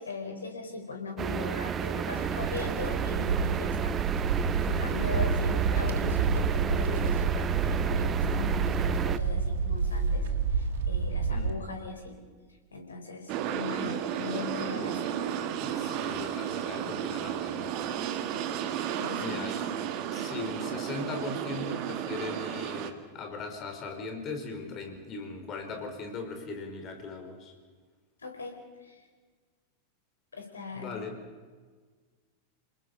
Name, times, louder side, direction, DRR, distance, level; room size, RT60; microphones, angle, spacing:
voice 1, 0.0-3.9 4.2-10.2 10.5-12.1 12.7-15.1 18.9-19.4 28.2-29.0 30.3-30.8, left 4 dB, 75° left, 4 dB, 4.7 m, -39 dB
sound 1, 1.2-9.2, right 8 dB, 25° right, 0.7 m, -32 dB
sound 2, 2.2-11.5, right 5 dB, 60° right, 1.8 m, -29 dB
sound 3, 13.3-22.9, right 9 dB, 40° right, 1.7 m, -33 dB
voice 2, 15.6-17.8 19.2-19.6 20.1-27.5 30.7-31.1, left 3 dB, 30° left, 4 dB, 4.8 m, -39 dB
29.0 x 20.0 x 5.5 m, 1.5 s
figure-of-eight pair, 90°, 0 cm